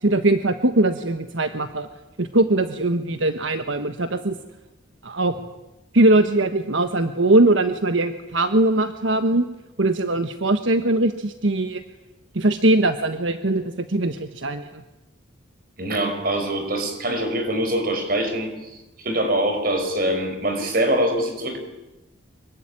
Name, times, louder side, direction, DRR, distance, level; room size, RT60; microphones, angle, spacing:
voice 1, 0.0-1.9 2.2-4.3 5.0-5.3 5.9-9.5 9.8-11.8 12.3-14.8, right 2 dB, 75° right, 8 dB, 1.3 m, -21 dB
voice 2, 15.8-18.5 19.0-21.6, right 1 dB, 50° right, 6 dB, 5.5 m, -23 dB
25.5 x 23.0 x 10.0 m, 1.0 s
head